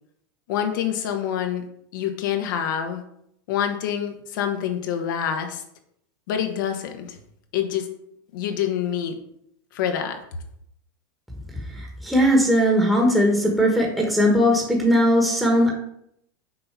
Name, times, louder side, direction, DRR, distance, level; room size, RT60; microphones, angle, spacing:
voice 1, 0.5-1.6 1.9-3.0 3.5-5.6 6.3-7.1 7.5-7.9 8.3-9.1 9.7-10.2, left 9 dB, 70° left, 5 dB, 1.4 m, -26 dB
voice 2, 12.0-15.7, equal, ahead, -2 dB, 1.3 m, -19 dB
6.6 x 4.1 x 5.9 m, 0.72 s
supercardioid pair, 150°, 11 cm